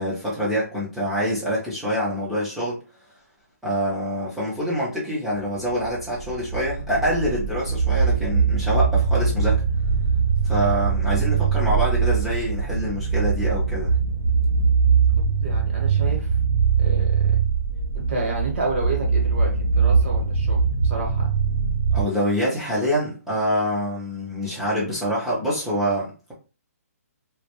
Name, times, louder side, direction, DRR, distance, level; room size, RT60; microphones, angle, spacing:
voice 1, 0.0-2.8 3.6-9.6 10.4-13.9 21.9-26.3, equal, ahead, -7 dB, 0.4 m, -25 dB
sound 1, 5.7-22.0, right 5 dB, 75° right, 0.8 m, -22 dB
voice 2, 15.4-16.4 16.8-17.4 17.9-21.3, right 3 dB, 45° right, 0 dB, 1.0 m, -30 dB
2.3 x 2.1 x 2.8 m, 0.34 s
hypercardioid pair, 175°, 9 cm